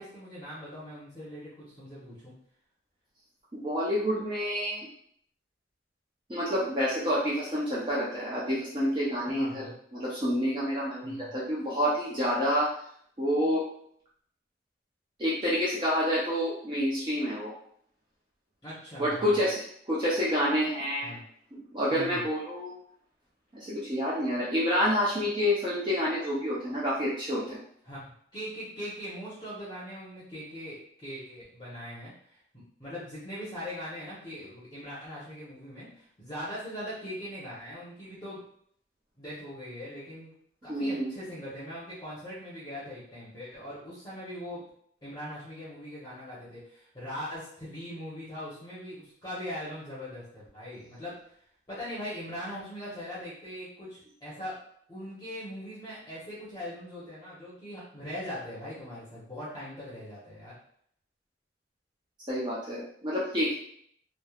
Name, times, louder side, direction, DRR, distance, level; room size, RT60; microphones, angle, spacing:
voice 1, 0.0-2.3 9.3-9.7 11.0-11.3 18.6-19.4 21.0-21.2 21.9-22.2 27.8-32.4 32.8-38.4 39.2-40.3 40.6-44.6 45.0-51.1 51.7-54.6 54.9-60.5, equal, 20° left, -9 dB, 0.8 m, -41 dB
voice 2, 3.5-4.9 6.3-12.7 13.2-13.6 15.2-17.5 19.0-19.6 19.9-21.2 21.5-22.7 23.5-27.6 40.7-41.1 62.3-63.5, equal, 25° right, -7 dB, 0.5 m, -28 dB
3.1 x 2.1 x 2.3 m, 0.64 s
head